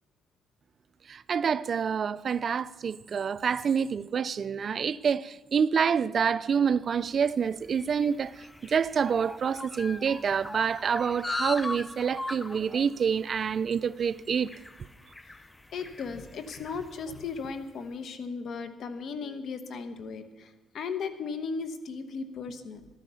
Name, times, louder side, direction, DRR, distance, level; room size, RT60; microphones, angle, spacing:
voice 1, 1.1-14.5, right 6 dB, 50° right, 0.4 m, -27 dB
sound 1, 7.0-17.6, left 2 dB, 15° left, 0.5 m, -40 dB
voice 2, 15.7-22.9, left 5 dB, 65° left, 1.1 m, -36 dB
12.5 x 9.2 x 6.9 m
cardioid pair, 90°, 0 cm